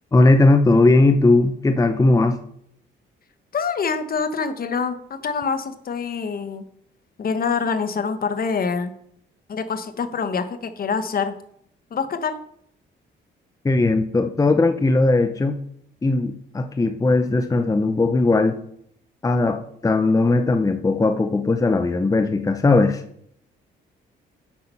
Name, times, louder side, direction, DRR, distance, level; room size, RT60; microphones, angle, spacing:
voice 1, 0.1-2.4 13.6-15.6 16.0-18.6 19.2-23.0, left 2 dB, 15° left, 8 dB, 0.7 m, -18 dB
voice 2, 3.5-6.6 7.2-8.9 9.5-11.3 11.9-12.4, left 5 dB, 50° left, 10 dB, 1.2 m, -25 dB
8.6 x 6.6 x 5.6 m, 0.69 s
cardioid pair, 90°, 20 cm